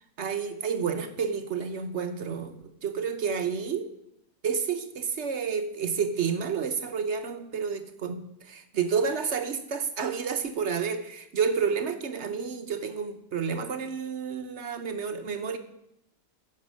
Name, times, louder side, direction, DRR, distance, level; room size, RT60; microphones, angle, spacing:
voice 1, 0.2-3.9 4.4-15.6, right 6 dB, 50° right, 7 dB, 0.9 m, -30 dB
9.8 x 6.8 x 6.3 m, 0.83 s
omnidirectional pair, 1.8 m